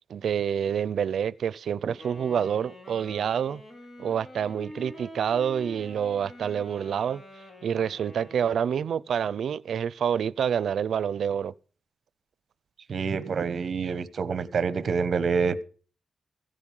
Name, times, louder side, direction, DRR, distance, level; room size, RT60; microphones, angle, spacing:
voice 1, 0.1-3.6 4.0-7.2 7.6-11.5, right 8 dB, 85° right, 0.6 m, -27 dB
Wind instrument woodwind instrument, 2.0-8.9, left 1 dB, 35° left, 3.7 m, -46 dB
voice 2, 12.9-15.6, right 5 dB, 55° right, 1.1 m, -27 dB
15.5 x 10.0 x 5.5 m
wide cardioid pair, 150°, 0 cm